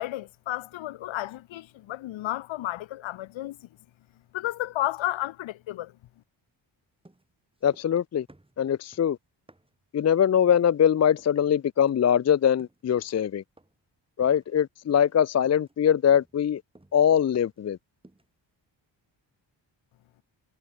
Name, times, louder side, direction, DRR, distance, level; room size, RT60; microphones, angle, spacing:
voice 1, 0.0-3.6 4.3-5.9, left 15 dB, 80° left, 0.9 m, -32 dB
sound 1, 7.0-8.0 8.3-9.9 10.5-10.8 11.2-11.5 11.9-12.2 12.6-13.3 13.6-13.9 14.2-14.6 14.9-15.2 15.4-17.7 18.0-18.4, right 2 dB, 10° right, 7.2 m, -58 dB
voice 2, 7.6-8.3 8.6-9.2 9.9-13.4 14.2-16.6 16.9-17.8, left 9 dB, 35° left, 0.5 m, -22 dB
cardioid pair, 115°, 46 cm